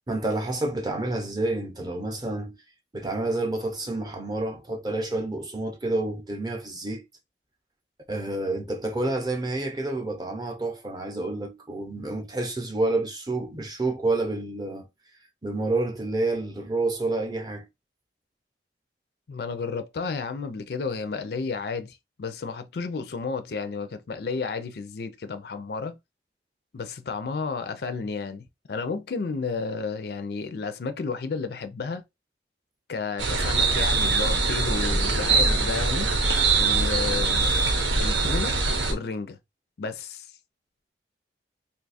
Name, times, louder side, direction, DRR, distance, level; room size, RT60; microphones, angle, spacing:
voice 1, 0.1-2.6 2.9-7.0 8.1-14.9 15.4-17.7, right 2 dB, 20° right, 0.6 m, -29 dB
voice 2, 19.3-26.0 26.7-32.0 32.9-36.1 36.6-38.5 38.8-39.4 39.8-40.3, left 4 dB, 60° left, 0.4 m, -32 dB
sound 1, 33.2-38.9, right 3 dB, 85° right, 0.8 m, -23 dB
2.7 x 2.3 x 4.0 m
head